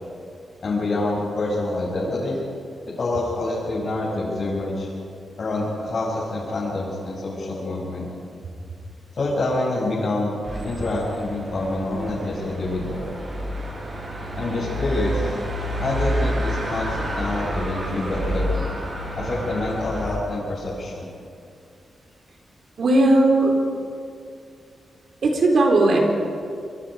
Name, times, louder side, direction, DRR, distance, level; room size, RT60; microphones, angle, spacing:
voice 1, 0.6-2.4 3.0-4.9 5.4-8.1 9.1-10.4 10.6-13.1 14.4-15.3 15.8-18.5 19.2-21.1, left 2 dB, 50° left, -7 dB, 6.9 m, -26 dB
sound 1, 10.4-20.2, equal, 45° right, 7.1 m, -29 dB
voice 2, 22.8-23.6 25.2-26.0, right 2 dB, 60° right, 1 dB, 4.4 m, -17 dB
27.5 x 24.0 x 5.2 m, 2.4 s
wide cardioid pair, 110°, 0 cm